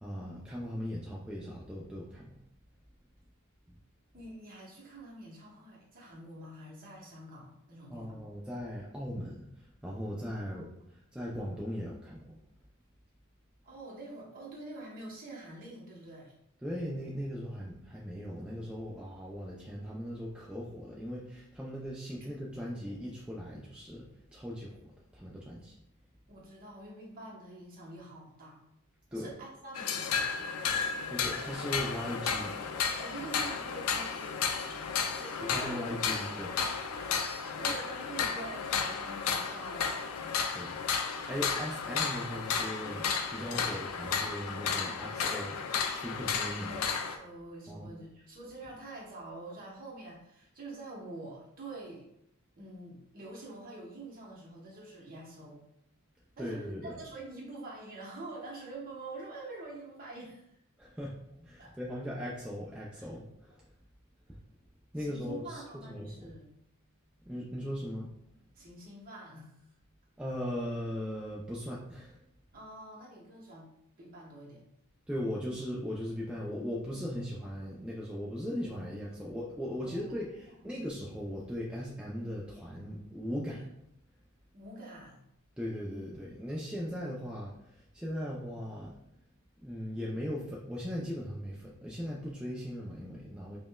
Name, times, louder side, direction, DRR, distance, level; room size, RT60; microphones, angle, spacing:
voice 1, 0.0-2.4 7.9-9.5 9.8-10.7 11.1-12.4 16.6-24.8 25.1-25.7 29.1-29.3 31.1-32.5 35.5-36.5 40.5-40.8 41.3-45.6 45.9-46.7 47.7-47.9 56.4-56.9 60.8-63.6 64.9-66.3 67.3-68.1 70.2-72.2 75.1-83.7 85.6-89.0 89.6-93.6, equal, 5° right, -5 dB, 0.3 m, -38 dB
voice 2, 4.1-8.1 10.3-10.9 13.6-16.3 26.3-28.6 29.1-30.3 33.0-35.8 36.1-36.4 36.9-40.0 46.6-52.0 52.6-55.6 56.4-60.6 61.6-62.0 62.9-63.1 65.0-66.5 68.5-69.6 72.5-73.7 74.0-74.6 79.8-80.1 80.3-80.8 84.5-85.2, right 2 dB, 40° right, -3 dB, 0.9 m, -46 dB
sound 1, 29.8-47.2, left 6 dB, 90° left, 0.4 m, -33 dB
5.0 x 2.1 x 2.2 m, 0.79 s
head